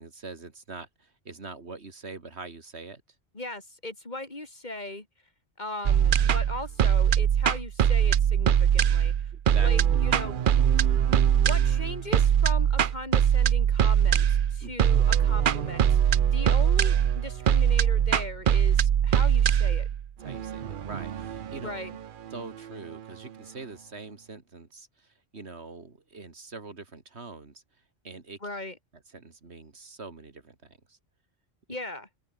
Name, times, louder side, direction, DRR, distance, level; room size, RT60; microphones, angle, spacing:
voice 1, 0.0-3.0 9.3-9.7 14.6-14.8 20.2-21.7 22.3-27.6 28.0-28.4 29.1-31.0, right 3 dB, 75° right, 2.8 m, -43 dB
voice 2, 3.3-5.1 5.6-9.1 9.5-10.4 11.3-19.9 21.6-22.0 28.4-28.8 31.7-32.1, left 2 dB, 40° left, 3.3 m, -38 dB
sound 1, 5.9-23.0, right 9 dB, 55° right, 0.8 m, -22 dB
open air
omnidirectional pair, 1.1 m